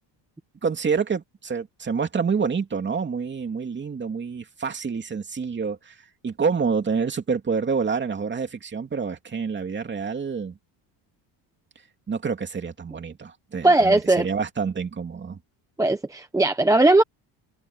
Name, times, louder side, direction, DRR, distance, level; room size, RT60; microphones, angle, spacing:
voice 1, 0.6-6.0 6.2-10.5 12.1-15.4, right 5 dB, 25° right, 2.9 m, -27 dB
voice 2, 13.6-14.3 15.8-17.0, right 2 dB, 5° right, 0.8 m, -18 dB
cardioid pair, 145°, 46 cm